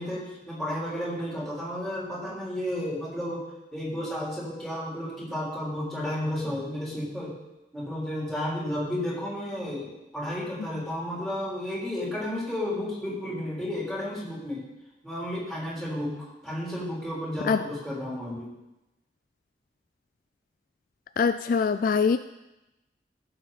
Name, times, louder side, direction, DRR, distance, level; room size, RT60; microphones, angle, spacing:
voice 1, 0.0-3.4 3.7-7.3 7.7-14.6 15.0-18.5, left 1 dB, ahead, -7 dB, 3.6 m, -32 dB
voice 2, 21.2-22.2, left 5 dB, 50° left, 11 dB, 0.3 m, -23 dB
16.0 x 7.2 x 4.0 m, 0.96 s
head